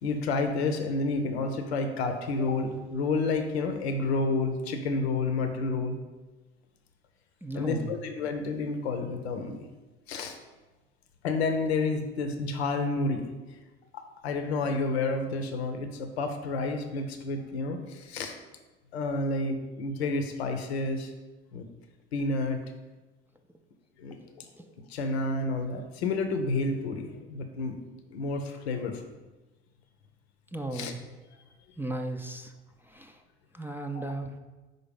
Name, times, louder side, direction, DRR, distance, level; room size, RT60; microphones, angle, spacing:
voice 1, 0.0-6.0 7.6-9.7 10.1-10.4 11.2-13.3 13.9-18.3 18.9-21.1 21.5-21.6 22.1-22.6 24.0-24.5 24.9-27.8 28.1-29.0 30.7-30.9 33.9-34.1, left 3 dB, 85° left, 6 dB, 0.7 m, -30 dB
voice 2, 7.4-7.9 24.6-24.7 30.5-31.0 31.8-32.5 32.9-33.1 33.5-34.3, right 2 dB, 5° right, 5 dB, 0.5 m, -35 dB
5.4 x 4.0 x 5.2 m, 1.2 s
hypercardioid pair, 70°, 31 cm